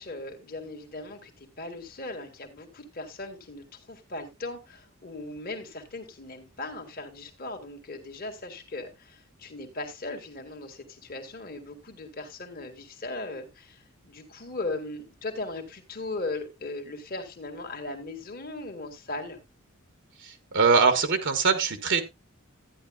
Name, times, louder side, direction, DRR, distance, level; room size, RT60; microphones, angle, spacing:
voice 1, 0.0-19.4, left 2 dB, 45° left, 4 dB, 1.8 m, -38 dB
voice 2, 20.2-22.0, right 5 dB, 60° right, 8 dB, 1.2 m, -22 dB
13.5 x 9.8 x 2.3 m, 0.22 s
head